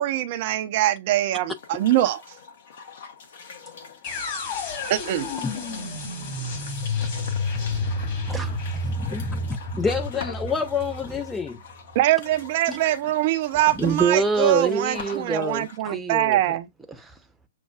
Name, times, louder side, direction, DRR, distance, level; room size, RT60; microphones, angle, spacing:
voice 1, 0.0-2.2 4.9-5.3 11.9-16.7, right 13 dB, 45° right, 0.5 m, -23 dB
sound 1, 1.4-15.8, left 6 dB, 60° left, 1.0 m, -43 dB
sound 2, 4.0-12.0, left 2 dB, 40° left, 2.3 m, -30 dB
voice 2, 7.6-8.6 13.7-16.6 16.9-17.1, right 4 dB, 5° right, 0.8 m, -26 dB
voice 3, 8.8-11.6 12.7-12.8 15.8-15.9, left 5 dB, 10° left, 0.3 m, -29 dB
6.4 x 2.3 x 2.3 m
figure-of-eight pair, 115°, 0 cm